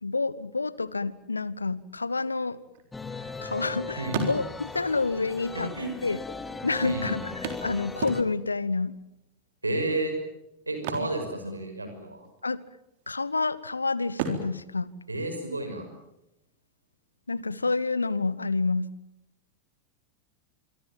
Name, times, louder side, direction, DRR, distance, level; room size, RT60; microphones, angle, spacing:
voice 1, 0.0-2.6 3.4-5.7 6.0-6.2 6.6-9.0 11.0-11.1 11.4-11.5 12.4-12.6 13.1-14.9 17.3-18.9, left 3 dB, 80° left, 20 dB, 1.1 m, -28 dB
sound 1, 2.6-3.7 4.0-4.9 5.8-5.9 6.1-6.2 7.4-8.6 10.7-12.0 12.2-12.5 13.0-13.6 14.1-15.9 17.8-17.9 18.4-18.5, right 5 dB, 50° right, 3.8 m, -36 dB
sound 2, 2.9-8.2, left 4 dB, 10° left, 2.2 m, -38 dB
voice 2, 5.5-6.0 6.8-7.1 9.6-10.2 10.7-12.2 15.1-15.9, right 2 dB, 80° right, 7 dB, 6.0 m, -31 dB
26.0 x 24.0 x 7.5 m, 0.87 s
figure-of-eight pair, 90°, 0 cm